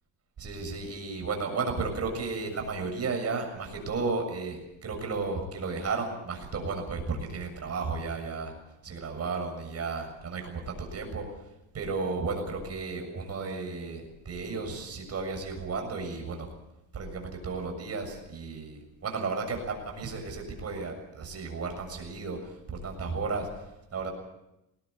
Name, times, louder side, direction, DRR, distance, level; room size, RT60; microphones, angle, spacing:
voice 1, 0.4-8.5 8.8-11.3 11.7-16.5 16.9-24.1, right 4 dB, 35° right, 3 dB, 6.9 m, -34 dB
20.5 x 19.5 x 8.1 m, 0.92 s
cardioid pair, 130°, 42 cm